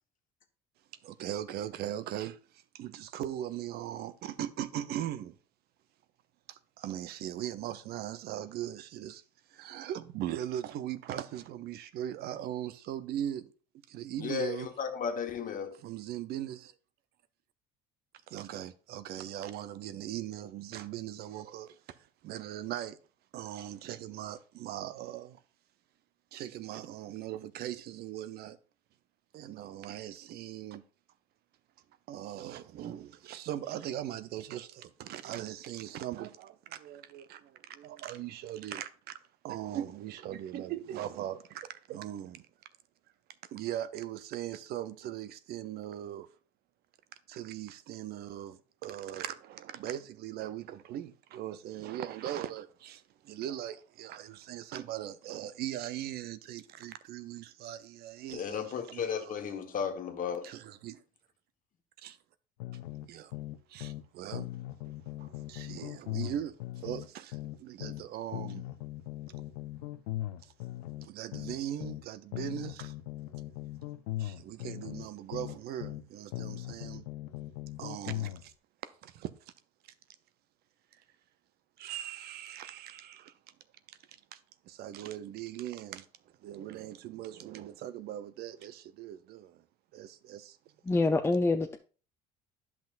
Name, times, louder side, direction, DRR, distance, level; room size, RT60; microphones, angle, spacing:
voice 1, 1.0-2.4 2.7-5.3 6.5-9.2 9.5-13.5 13.9-14.7 15.8-16.7 18.3-21.8 22.2-23.0 23.3-25.4 26.3-28.6 29.3-30.8 32.1-39.2 39.4-42.4 43.5-46.3 47.3-59.4 60.4-61.0 62.0-62.2 63.0-63.3 63.7-64.5 65.2-68.6 70.4-70.5 71.0-72.9 74.2-77.0 77.8-78.5 79.0-79.3 81.8-83.3 83.9-84.0 84.3-84.4 84.7-86.1 86.4-89.6 89.9-90.6, right 11 dB, 60° right, 0.6 m, -39 dB
voice 2, 14.2-15.8 58.3-60.5, left 7 dB, 45° left, 1.3 m, -34 dB
sound 1, 62.6-64.1 64.3-68.0 68.3-72.0 72.3-76.0 76.3-78.4, left 15 dB, 90° left, 0.4 m, -39 dB
voice 3, 90.8-91.8, left 3 dB, 15° left, 0.5 m, -26 dB
10.5 x 5.9 x 2.5 m
supercardioid pair, 80°, 18 cm